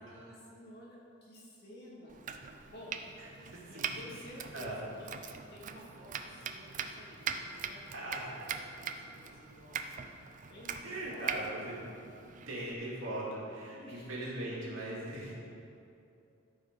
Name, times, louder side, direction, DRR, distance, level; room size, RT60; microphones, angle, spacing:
voice 1, 0.0-2.2 2.7-2.9 3.7-10.0 10.5-11.6 13.7-14.4 15.0-15.3, left 1 dB, 55° left, -5 dB, 2.1 m, -53 dB
Domestic sounds home sounds, 2.1-12.7, right 6 dB, 40° right, 0.4 m, -42 dB
voice 2, 3.4-3.9 4.5-4.8 7.9-8.3 10.8-11.8 12.3-15.3, right 1 dB, 80° right, -5 dB, 2.5 m, -40 dB
13.0 x 5.3 x 5.1 m, 2.6 s
head